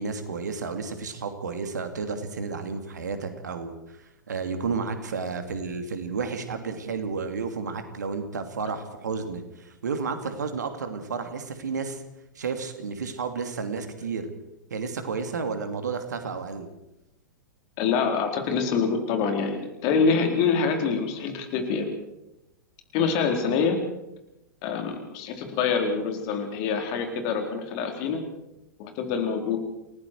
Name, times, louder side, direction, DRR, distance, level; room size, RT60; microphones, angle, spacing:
voice 1, 0.0-4.0 4.3-12.0 12.3-14.3 14.7-16.7, right 5 dB, 65° right, 8 dB, 2.8 m, -32 dB
voice 2, 17.8-21.9 22.9-23.8 24.6-28.2 28.8-29.6, left 5 dB, 40° left, 4 dB, 4.3 m, -25 dB
29.0 x 19.5 x 4.8 m, 0.90 s
figure-of-eight pair, 100°, 10 cm